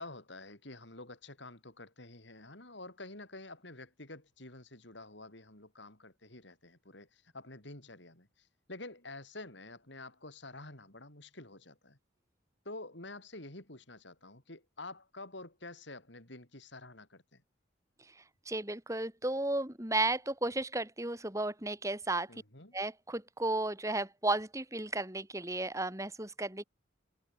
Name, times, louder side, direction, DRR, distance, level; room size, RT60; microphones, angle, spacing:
voice 1, 0.0-12.0 12.7-17.4 22.3-22.8, left 2 dB, 65° left, 5.4 m, -49 dB
voice 2, 18.5-22.3 22.7-26.6, right 2 dB, 15° right, 2.6 m, -34 dB
head